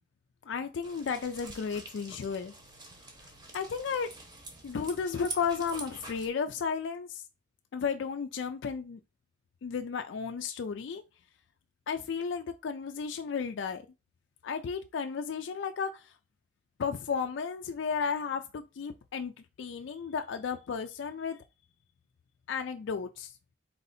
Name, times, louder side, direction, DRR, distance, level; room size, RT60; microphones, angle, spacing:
voice 1, 0.5-2.5 3.5-4.1 4.6-7.2 7.7-9.0 9.6-11.0 11.9-13.9 14.4-16.1 16.8-19.3 19.6-21.4 22.5-23.3, left 6 dB, 65° left, 0.4 m, -33 dB
sound 1, 0.8-6.3, right 2 dB, 25° right, 0.8 m, -46 dB
4.0 x 2.7 x 4.0 m
head